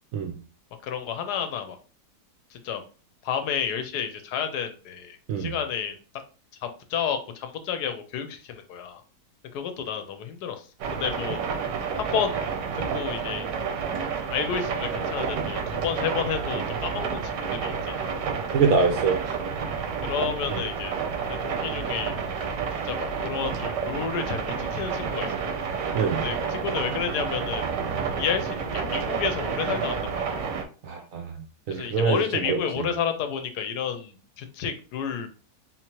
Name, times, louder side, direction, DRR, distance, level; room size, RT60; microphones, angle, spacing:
voice 1, 0.8-1.8 2.5-2.8 3.2-6.0 6.6-9.0 9.5-11.4 11.9-12.4 12.7-13.5 14.3-18.2 20.0-21.0 21.3-22.2 22.8-25.3 26.2-27.7 28.2-30.5 31.7-35.3, left 7 dB, 75° left, 7 dB, 1.1 m, -31 dB
sound 1, 10.8-30.6, right 6 dB, 85° right, 1.3 m, -30 dB
voice 2, 18.5-19.4 25.9-26.2 30.8-31.4 31.7-32.9, right 5 dB, 65° right, 3 dB, 0.8 m, -24 dB
3.7 x 2.9 x 2.9 m, 0.36 s
omnidirectional pair, 1.8 m